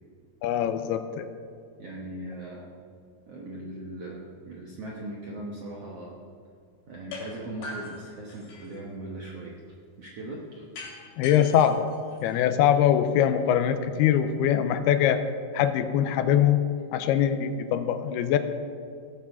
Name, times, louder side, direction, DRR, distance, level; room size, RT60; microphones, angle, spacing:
voice 1, 0.4-1.3 11.2-11.9 12.2-15.2 15.5-16.6 16.9-18.4, left 10 dB, 90° left, 9 dB, 2.6 m, -23 dB
voice 2, 1.8-2.7 3.3-6.1 6.9-9.6 10.0-10.6, right 1 dB, 70° right, -3 dB, 1.4 m, -39 dB
sound 1, 7.1-7.3 7.6-8.8 10.8-12.7, left 3 dB, 70° left, 4.4 m, -41 dB
16.5 x 7.0 x 5.6 m, 2.3 s
omnidirectional pair, 4.6 m